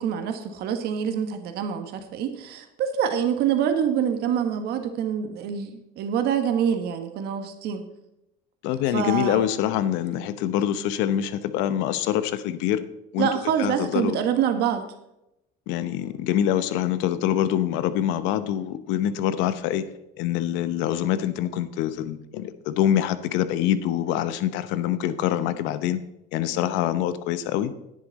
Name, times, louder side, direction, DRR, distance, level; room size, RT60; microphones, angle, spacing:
voice 1, 0.0-5.7 6.0-7.8 8.9-9.4 13.2-14.8, right 8 dB, 60° right, 7 dB, 1.5 m, -25 dB
voice 2, 8.6-12.8 13.1-13.3 13.6-14.2 15.7-19.8 20.2-26.0 26.3-27.7, left 11 dB, 75° left, 12 dB, 0.9 m, -25 dB
10.5 x 10.5 x 4.1 m, 0.87 s
cardioid pair, 140°, 19 cm